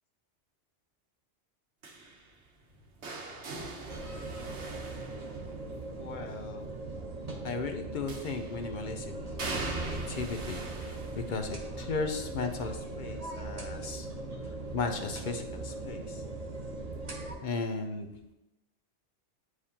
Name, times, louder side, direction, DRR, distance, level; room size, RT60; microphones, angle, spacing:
sound 1, 1.8-5.9 8.1-8.7 9.4-15.2 15.5-16.0 17.2-17.3, right 3 dB, 70° right, 1.2 m, -42 dB
sound 2, 3.9-17.3, right 2 dB, 35° right, 1.1 m, -40 dB
voice 1, 6.0-6.7 7.4-14.1 14.7-16.2 17.4-18.1, left 4 dB, 55° left, 6 dB, 0.6 m, -36 dB
8.6 x 4.8 x 2.8 m, 0.95 s
omnidirectional pair, 1.2 m